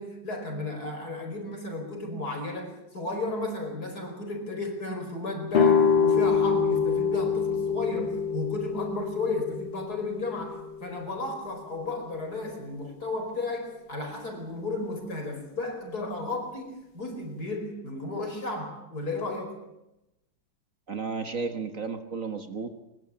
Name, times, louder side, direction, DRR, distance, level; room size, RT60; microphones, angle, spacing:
voice 1, 0.0-19.6, left 2 dB, 50° left, 4 dB, 5.3 m, -34 dB
sound 1, 5.5-11.3, left 6 dB, 65° left, 2.8 m, -25 dB
voice 2, 20.9-22.7, right 4 dB, 45° right, 8 dB, 1.6 m, -33 dB
21.5 x 21.5 x 7.3 m, 0.92 s
omnidirectional pair, 2.2 m